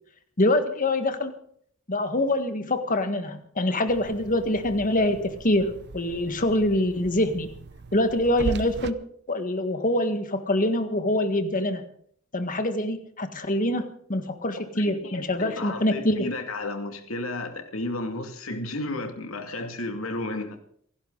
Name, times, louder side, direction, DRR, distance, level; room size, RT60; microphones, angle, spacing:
voice 1, 0.4-1.3 1.9-7.5 7.9-9.0 9.3-11.8 12.3-16.3, left 1 dB, 40° left, 8 dB, 1.8 m, -25 dB
sound 1, 3.9-8.9, right 3 dB, 55° right, 0.7 m, -39 dB
voice 2, 14.7-20.6, left 2 dB, 80° left, 5 dB, 2.5 m, -33 dB
28.0 x 11.5 x 4.0 m, 0.63 s
head